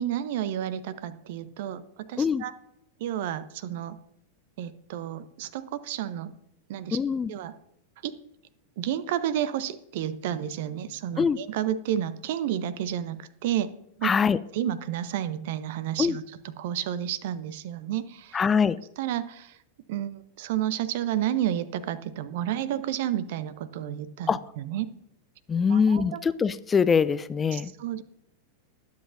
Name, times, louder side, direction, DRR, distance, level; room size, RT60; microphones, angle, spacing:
voice 1, 0.0-2.5 3.0-4.0 4.6-6.3 6.7-7.0 7.3-7.5 8.0-8.1 8.8-13.7 14.0-14.1 14.5-16.2 16.6-18.4 19.0-19.6 19.9-24.9 25.7-26.2 27.5-28.0, right 11 dB, 50° right, 16 dB, 0.7 m, -31 dB
voice 2, 6.9-7.3 11.2-11.4 14.0-14.4 16.0-16.2 18.3-18.8 24.3-24.4 25.5-27.7, left 6 dB, 20° left, 16 dB, 0.4 m, -23 dB
20.0 x 8.1 x 2.6 m, 0.78 s
figure-of-eight pair, 90°, 0 cm